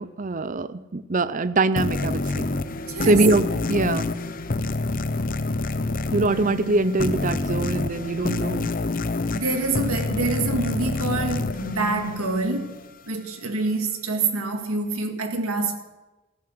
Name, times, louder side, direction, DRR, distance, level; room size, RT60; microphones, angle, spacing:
voice 1, 0.0-2.5 3.0-4.1 6.1-8.7, right 2 dB, 35° right, 0.6 m, -23 dB
sound 1, 1.8-12.9, left 2 dB, 40° left, 0.7 m, -27 dB
voice 2, 2.9-3.2 9.3-12.8 13.1-15.8, right 3 dB, 85° right, 1.9 m, -26 dB
14.5 x 11.5 x 7.8 m
head